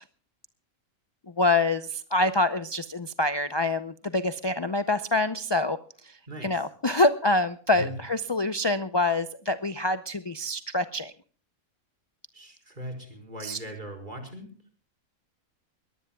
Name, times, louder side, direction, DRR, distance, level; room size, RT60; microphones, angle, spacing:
voice 1, 1.4-5.8 6.4-11.1 13.4-13.6, left 2 dB, 40° left, 11 dB, 0.3 m, -26 dB
voice 2, 6.3-6.6 7.7-8.0 12.3-14.5, right 1 dB, 35° right, 5 dB, 4.8 m, -39 dB
22.0 x 18.5 x 2.3 m, 0.42 s
omnidirectional pair, 1.5 m